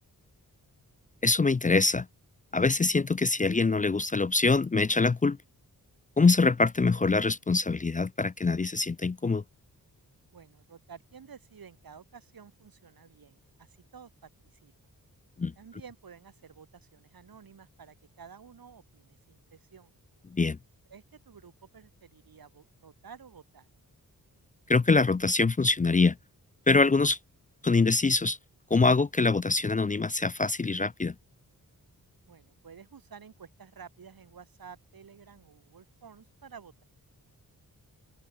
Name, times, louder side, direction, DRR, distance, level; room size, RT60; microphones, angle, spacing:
voice 1, 1.2-2.1 2.5-5.4 6.2-9.4 15.4-15.5 20.3-20.6 24.7-26.2 26.7-27.2 27.6-28.4 28.7-31.1, left 3 dB, 25° left, 0.4 m, -24 dB
voice 2, 10.3-14.9 15.5-19.9 20.9-23.7 32.3-36.8, right 6 dB, 80° right, 4.9 m, -52 dB
open air
wide cardioid pair, 100°, 35 cm